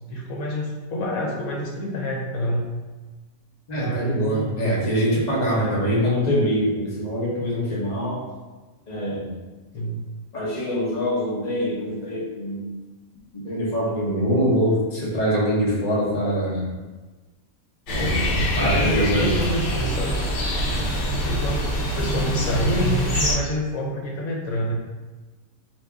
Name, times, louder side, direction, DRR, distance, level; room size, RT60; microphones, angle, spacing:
voice 1, 0.1-2.7 3.7-4.8 5.5-5.9 9.7-10.1 18.0-20.2 20.7-20.8 21.2-24.7, equal, 80° left, -2 dB, 1.2 m, -27 dB
voice 2, 3.7-8.2 8.9-9.4 10.3-12.7 13.3-16.7 17.9-19.3 20.6-20.8, equal, 30° left, -5 dB, 1.1 m, -24 dB
sound 1, 17.9-23.3, equal, 55° left, 1.2 m, -24 dB
4.4 x 2.7 x 3.5 m, 1.2 s
omnidirectional pair, 1.5 m